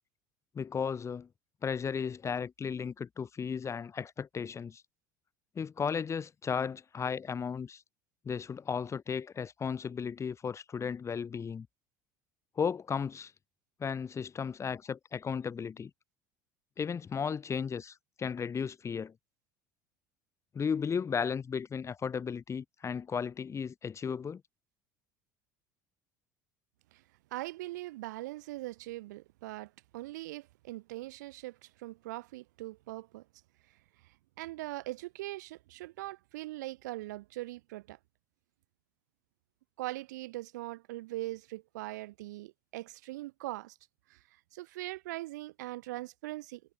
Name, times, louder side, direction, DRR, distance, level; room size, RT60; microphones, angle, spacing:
voice 1, 0.5-1.3 1.6-4.8 5.6-7.8 8.3-11.7 12.6-13.3 13.8-15.9 16.8-19.1 20.5-24.4, left 6 dB, 30° left, 1.8 m, -35 dB
voice 2, 27.3-33.2 34.4-38.0 39.8-43.8 44.1-44.2 44.5-46.6, right 18 dB, 70° right, 1.4 m, -41 dB
hypercardioid pair, 70°, 10 cm